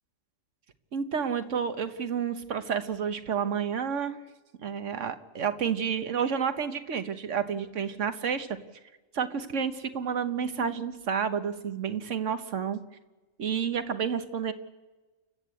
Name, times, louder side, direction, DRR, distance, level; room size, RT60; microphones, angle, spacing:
voice 1, 0.9-4.2 4.6-8.5 9.1-12.8 13.4-14.5, right 7 dB, 70° right, 10 dB, 1.5 m, -30 dB
29.5 x 12.5 x 8.3 m, 1.2 s
omnidirectional pair, 1.3 m